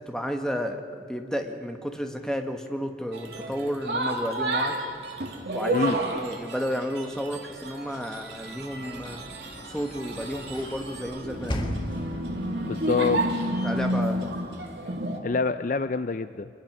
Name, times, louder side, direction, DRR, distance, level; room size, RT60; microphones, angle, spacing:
voice 1, 0.1-0.8 1.1-4.8 5.5-9.2 9.6-11.8 13.6-14.3, equal, 5° left, 4 dB, 1.3 m, -32 dB
sound 1, 3.1-15.2, right 1 dB, 65° right, 2.2 m, -31 dB
Sliding door / Slam, 8.1-15.1, equal, 25° left, 1.6 m, -39 dB
voice 2, 12.7-13.2 15.2-16.5, left 4 dB, 45° left, 12 dB, 0.4 m, -26 dB
26.0 x 21.0 x 6.1 m, 2.5 s
head